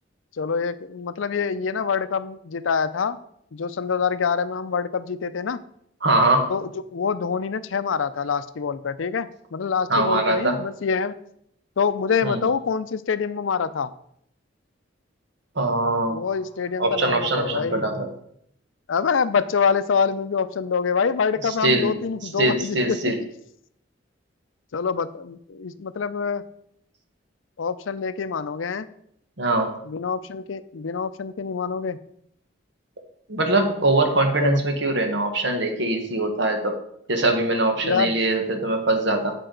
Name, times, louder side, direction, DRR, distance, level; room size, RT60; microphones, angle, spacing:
voice 1, 0.4-3.2 3.5-5.6 6.5-11.1 11.8-13.9 16.1-17.9 18.9-23.3 24.7-26.4 27.6-28.9 29.8-32.0 34.4-34.6 37.8-38.1, left 6 dB, 80° left, 14 dB, 0.5 m, -25 dB
voice 2, 6.0-6.5 9.9-10.6 12.2-12.4 15.5-16.2 16.8-18.1 21.4-22.0 22.4-23.1 29.4-29.7 33.3-36.7 37.1-39.3, right 2 dB, 65° right, 5 dB, 1.5 m, -22 dB
9.0 x 7.5 x 3.9 m, 0.70 s
head